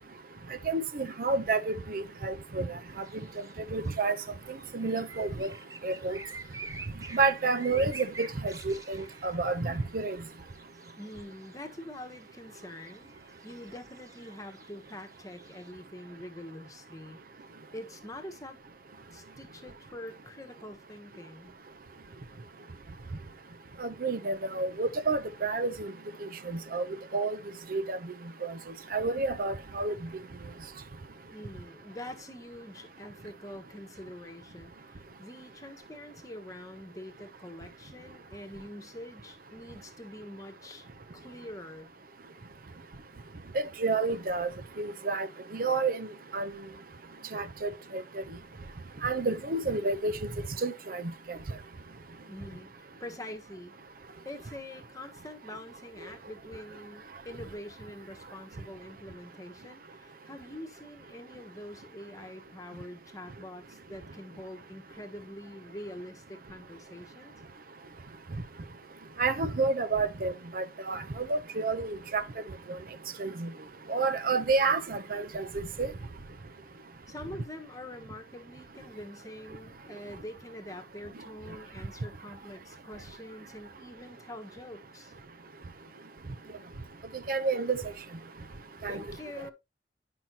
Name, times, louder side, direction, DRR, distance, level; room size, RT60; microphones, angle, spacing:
voice 1, 0.7-2.7 3.0-3.1 3.7-4.2 4.7-5.5 5.8-6.2 7.1-10.2 23.8-25.9 26.2-26.8 27.1-27.4 27.7-28.0 28.4-28.5 28.9-29.9 43.5-44.5 44.8-45.3 45.5-46.1 46.3-46.5 47.3-48.2 49.0-50.1 50.6-51.0 51.3-51.4 69.2-72.2 73.2-73.5 73.9-75.9 87.3-87.8 88.8-89.0, right 3 dB, 55° right, 0.7 m, -29 dB
sound 1, 2.9-15.7, right 3 dB, 20° right, 1.2 m, -48 dB
voice 2, 11.0-13.1 13.4-17.2 17.7-18.6 19.1-21.5 31.3-40.9 41.1-41.9 52.3-52.7 53.0-53.7 54.2-67.3 77.1-85.1 88.9-89.5, left 1 dB, 20° left, 1.3 m, -45 dB
10.5 x 5.7 x 2.9 m
head